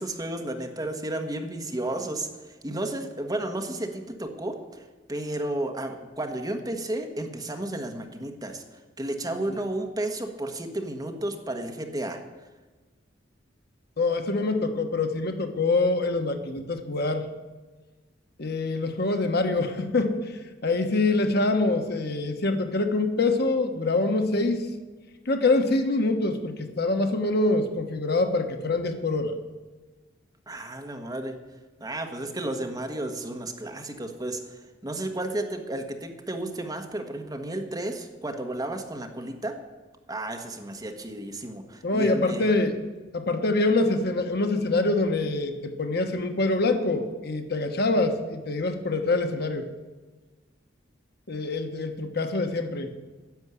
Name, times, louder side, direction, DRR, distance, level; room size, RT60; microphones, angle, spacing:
voice 1, 0.0-8.6 9.0-12.2 30.5-31.4 31.8-39.6 40.1-42.5, right 1 dB, 20° right, 5 dB, 1.2 m, -32 dB
voice 2, 14.0-17.3 18.4-20.2 20.6-24.7 25.3-29.3 41.8-42.8 43.1-49.7 51.3-52.9, left 2 dB, 60° left, 6 dB, 1.2 m, -25 dB
10.5 x 7.3 x 9.6 m, 1.3 s
head